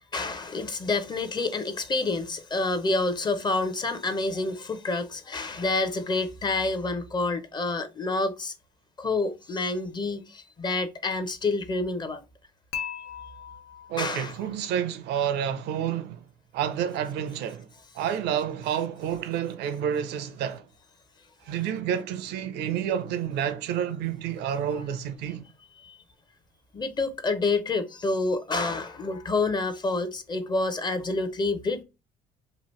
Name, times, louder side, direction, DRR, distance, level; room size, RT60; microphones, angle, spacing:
voice 1, 0.1-8.5 9.0-12.2 14.0-14.3 25.8-26.0 26.7-31.8, left 3 dB, 25° left, 0.5 m, -28 dB
Dishes pots and pans / Chink clink, 12.7-14.8, left 8 dB, 80° left, 0.5 m, -39 dB
voice 2, 13.9-16.3 16.5-17.7 17.9-20.7 21.4-25.5, right 9 dB, 80° right, 0.5 m, -29 dB
2.9 x 2.5 x 2.9 m
cardioid pair, 110°, 17 cm